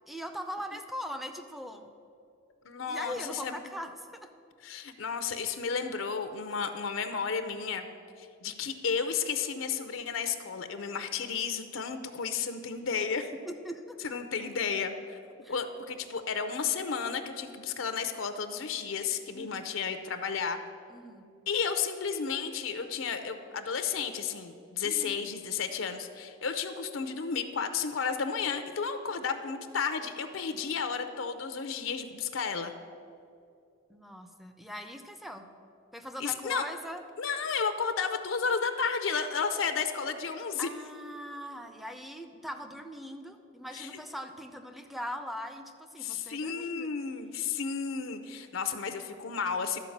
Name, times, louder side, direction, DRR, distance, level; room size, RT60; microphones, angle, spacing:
voice 1, 0.1-1.9 2.9-4.3 13.5-14.0 15.4-15.6 19.3-19.8 20.9-21.3 23.2-23.3 24.8-25.2 33.9-35.5 35.9-37.0 40.6-46.9, equal, ahead, 7 dB, 0.5 m, -41 dB
voice 2, 2.6-3.6 4.6-7.8 8.2-13.3 14.0-15.2 15.5-20.6 21.5-32.7 36.2-36.6 37.2-40.7 43.7-43.9 46.0-49.8, left 6 dB, 80° left, 8 dB, 0.6 m, -32 dB
12.5 x 4.7 x 7.2 m, 2.4 s
head